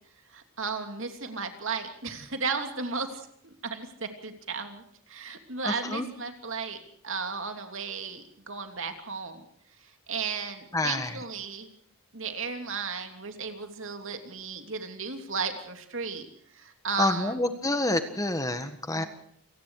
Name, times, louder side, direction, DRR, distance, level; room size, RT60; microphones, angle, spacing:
voice 1, 0.3-6.8 7.0-9.4 9.8-11.7 12.1-17.4 18.9-19.1, right 5 dB, 60° right, 6 dB, 3.0 m, -35 dB
voice 2, 5.6-6.0 10.7-11.1 17.0-19.0, left 2 dB, 15° left, 9 dB, 1.4 m, -28 dB
28.5 x 19.0 x 4.8 m, 0.63 s
head